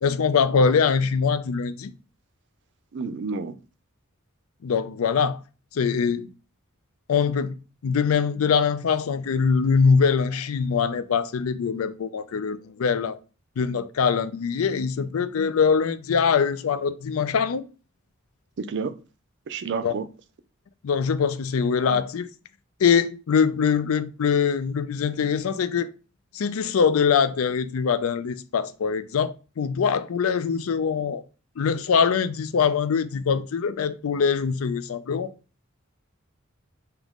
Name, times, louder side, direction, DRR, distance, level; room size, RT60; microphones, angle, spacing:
voice 1, 0.0-1.9 4.6-5.4 5.7-6.3 7.1-7.6 7.8-13.2 13.6-17.6 19.8-20.0 20.8-22.3 22.8-25.9 26.3-31.2 31.6-35.3, left 6 dB, 80° left, 0.4 m, -23 dB
voice 2, 2.9-3.5 18.6-18.9 19.5-20.1, right 4 dB, 60° right, 0.4 m, -30 dB
3.7 x 2.9 x 3.5 m
head